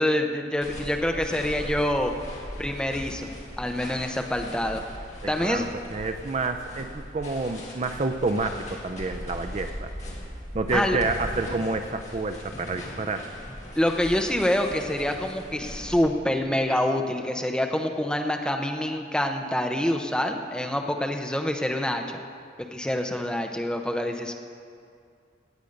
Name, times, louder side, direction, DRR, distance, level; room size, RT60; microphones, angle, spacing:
voice 1, 0.0-2.1 2.6-3.3 3.6-4.8 5.3-5.6 10.7-11.0 13.8-22.2 22.7-24.3, left 1 dB, 5° left, 3 dB, 0.6 m, -26 dB
sound 1, 0.6-16.0, equal, 35° left, 2.1 m, -39 dB
voice 2, 5.2-9.9 10.5-13.3, right 3 dB, 35° right, 7 dB, 0.4 m, -29 dB
17.0 x 8.1 x 5.2 m, 2.3 s
head